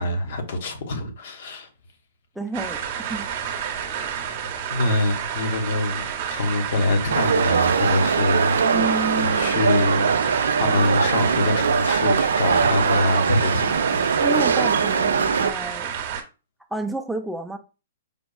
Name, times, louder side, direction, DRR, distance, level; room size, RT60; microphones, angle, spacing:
voice 1, 0.0-1.7 3.9-4.1 4.7-10.2 10.6-14.0, left 2 dB, 55° left, 0.8 m, -25 dB
voice 2, 2.4-2.8 3.1-3.3 8.6-9.6 13.6-15.9 16.7-17.6, right 2 dB, ahead, 0.4 m, -30 dB
sound 1, 2.5-16.2, right 8 dB, 45° right, 0.7 m, -30 dB
sound 2, 7.1-15.5, right 5 dB, 85° right, 0.3 m, -21 dB
5.1 x 2.3 x 2.3 m
hypercardioid pair, 145°, 0 cm